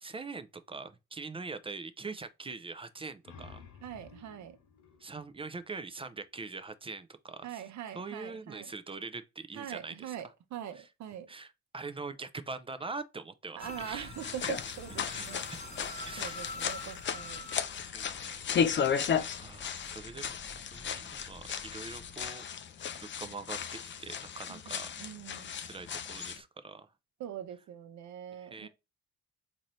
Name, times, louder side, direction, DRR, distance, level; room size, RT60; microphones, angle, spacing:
voice 1, 0.0-3.6 5.0-10.2 10.7-10.9 11.3-14.3 15.1-16.5 17.1-17.2 17.9-18.4 18.8-22.4 23.0-24.9 25.6-26.9 28.3-28.7, right 4 dB, 20° right, 0.4 m, -43 dB
sound 1, 3.0-6.4, left 5 dB, 80° left, 0.9 m, -54 dB
voice 2, 3.8-4.6 7.4-8.7 9.5-11.3 13.6-15.5 16.2-17.5 24.5-25.5 27.2-28.7, right 10 dB, 65° right, 0.8 m, -43 dB
sound 2, 13.6-22.3, left 2 dB, 20° left, 1.1 m, -48 dB
sound 3, 14.1-26.4, left 7 dB, 40° left, 0.5 m, -35 dB
4.0 x 2.7 x 3.0 m
cardioid pair, 90°, 30 cm